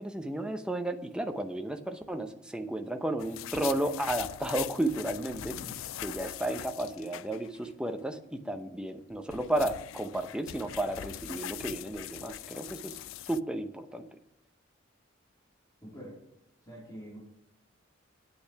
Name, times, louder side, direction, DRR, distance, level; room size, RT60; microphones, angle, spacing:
voice 1, 0.0-5.6 6.0-13.0 13.3-14.1, right 1 dB, 5° right, 6 dB, 0.8 m, -33 dB
sound 1, 3.2-7.7 8.0-8.1 9.0-13.4, left 13 dB, 90° left, 0.3 m, -42 dB
voice 2, 5.1-5.8 7.0-7.1 15.8-16.2 16.7-17.2, equal, 20° left, -7 dB, 3.6 m, -46 dB
8.7 x 8.6 x 5.8 m, 0.80 s
head